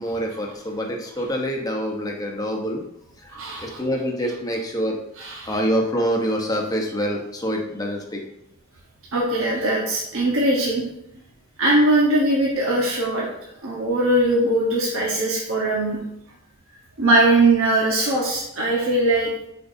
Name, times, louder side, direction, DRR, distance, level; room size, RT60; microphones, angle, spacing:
voice 1, 0.0-2.8 3.2-5.0 5.4-8.2, equal, 15° left, 1 dB, 0.9 m, -26 dB
voice 2, 3.3-3.8 5.2-5.6 9.1-10.8 11.6-13.3 13.6-16.0 17.0-19.3, right 1 dB, 70° right, -3 dB, 1.2 m, -20 dB
9.0 x 4.6 x 2.7 m, 0.78 s
head